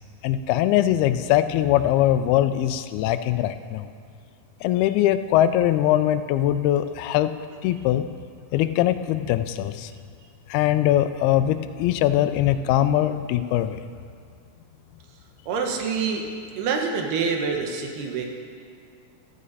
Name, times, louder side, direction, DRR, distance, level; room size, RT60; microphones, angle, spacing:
voice 1, 0.2-3.9 4.6-7.3 7.6-8.0 8.5-9.9 10.5-13.8, left 12 dB, 85° left, 11 dB, 2.5 m, -21 dB
voice 2, 15.5-16.3 16.6-18.3, right 5 dB, 85° right, 2 dB, 3.3 m, -26 dB
15.0 x 14.0 x 4.1 m, 2.2 s
omnidirectional pair, 4.4 m